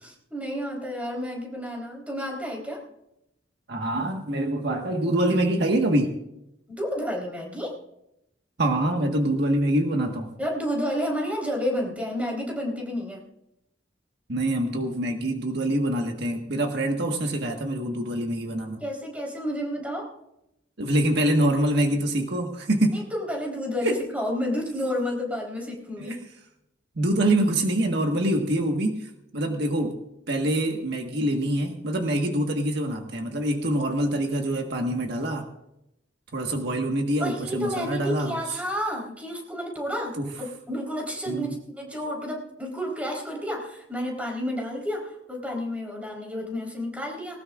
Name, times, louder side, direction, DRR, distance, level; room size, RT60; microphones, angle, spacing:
voice 1, 0.0-2.8 6.7-7.7 10.4-13.3 18.8-20.1 22.9-26.2 37.2-47.4, equal, 10° right, -1 dB, 4.0 m, -31 dB
voice 2, 3.7-6.2 8.6-10.3 14.3-18.8 20.8-23.0 23.8-24.0 26.0-26.2 26.9-30.0 30.3-35.5 36.3-38.4 40.2-40.3 41.3-41.5, right 1 dB, 65° right, 2 dB, 1.6 m, -25 dB
20.0 x 19.0 x 2.5 m, 0.84 s
head